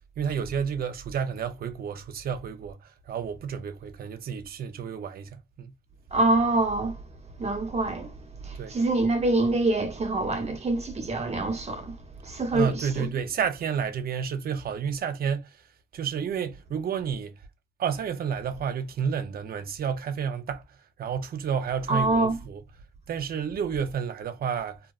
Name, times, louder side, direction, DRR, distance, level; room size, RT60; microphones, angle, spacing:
voice 1, 0.2-2.8 3.1-5.8 8.6-8.8 12.5-15.6 15.9-17.3 17.8-20.7 21.0-22.6 23.1-24.8, right 7 dB, 50° right, 0.5 m, -30 dB
voice 2, 6.1-7.0 7.4-8.1 8.4-11.9 12.2-13.0 21.9-22.4, right 2 dB, 35° right, 0.9 m, -25 dB
2.8 x 2.3 x 2.3 m
cardioid pair, 90°, 20 cm